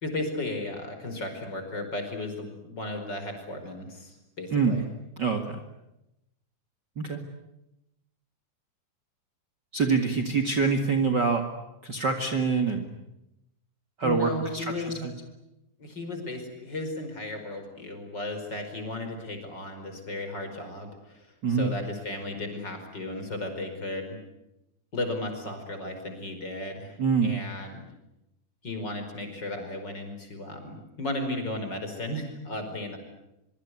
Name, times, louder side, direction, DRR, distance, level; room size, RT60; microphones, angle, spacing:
voice 1, 0.0-4.8 14.0-15.1 15.8-24.2 24.9-27.8 28.6-33.0, left 2 dB, 35° left, 6 dB, 5.5 m, -35 dB
voice 2, 5.2-5.6 7.0-7.2 9.7-11.4 11.8-12.9 14.0-15.1 21.4-21.7 27.0-27.3, right 5 dB, 40° right, 5 dB, 2.2 m, -25 dB
24.5 x 24.0 x 9.6 m, 0.89 s
omnidirectional pair, 3.5 m